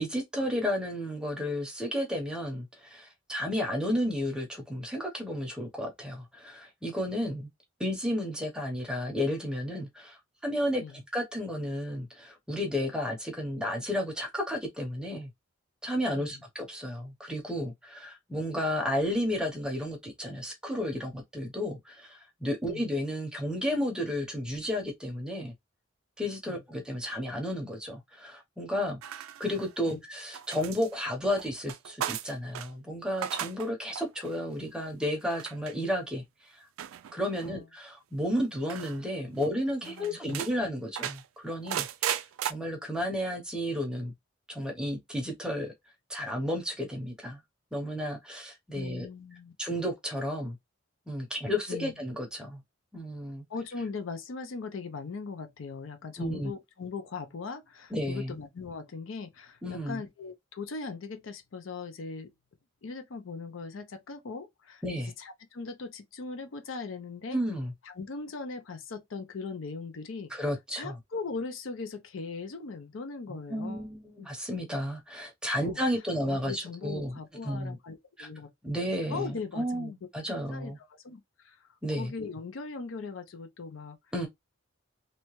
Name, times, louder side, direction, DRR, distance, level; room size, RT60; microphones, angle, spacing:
voice 1, 0.0-7.5 7.8-15.3 15.8-25.5 26.2-29.0 29.4-36.6 37.1-44.1 44.5-45.7 46.1-47.4 47.7-49.1 49.6-50.6 51.1-52.6 52.9-53.4 56.2-56.5 57.9-58.4 59.6-60.0 64.8-65.1 67.3-67.7 70.3-71.0 73.3-77.2 77.4-77.8 78.2-78.3 78.6-80.8 81.8-82.1 84.1-84.3, equal, 5° right, 0.6 m, -32 dB
sound 1, 29.0-29.9 30.3-32.7 33.1-33.7 34.0-34.3 35.3-35.7 36.8-37.5 38.7-39.0 39.4-39.5 39.8-40.5 41.0-42.5, right 10 dB, 85° right, 0.3 m, -36 dB
voice 2, 39.4-40.4 48.7-49.5 51.7-51.9 53.5-62.3 62.8-64.8 65.2-67.4 67.8-70.3 70.7-73.9 75.6-75.8 76.3-78.5 79.1-79.9 80.5-84.0, left 4 dB, 75° left, 0.5 m, -39 dB
2.7 x 2.1 x 2.9 m
head